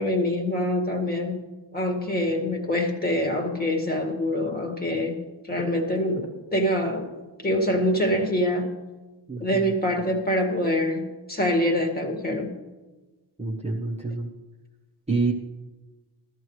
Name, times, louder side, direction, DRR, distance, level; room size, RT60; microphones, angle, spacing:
voice 1, 0.0-1.5 1.7-7.1 7.4-8.7 9.4-12.6, left 1 dB, 20° left, 2 dB, 1.9 m, -25 dB
voice 2, 9.3-9.7 13.4-14.3 15.1-15.3, right 3 dB, 15° right, -2 dB, 1.2 m, -27 dB
14.5 x 13.5 x 3.2 m, 1.2 s
cardioid pair, 125°, 44 cm